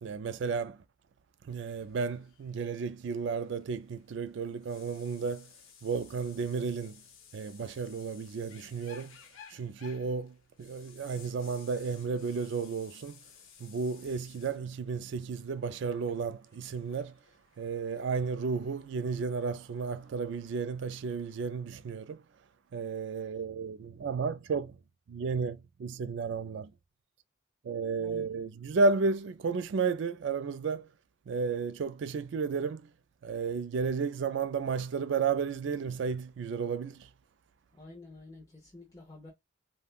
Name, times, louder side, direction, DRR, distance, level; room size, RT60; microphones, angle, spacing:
voice 1, 0.0-0.8 1.4-5.5 5.8-7.0 7.3-9.2 9.5-13.2 13.6-17.2 17.6-22.2 22.7-24.8 25.1-26.7 27.6-30.9 31.3-32.9 33.2-37.1, right 5 dB, 60° right, 0.3 m, -33 dB
sound 1, 1.5-20.6, left 7 dB, 80° left, 0.7 m, -58 dB
voice 2, 28.0-28.3 28.7-29.0 37.7-39.3, left 2 dB, 15° left, 0.7 m, -50 dB
3.4 x 2.2 x 2.3 m
head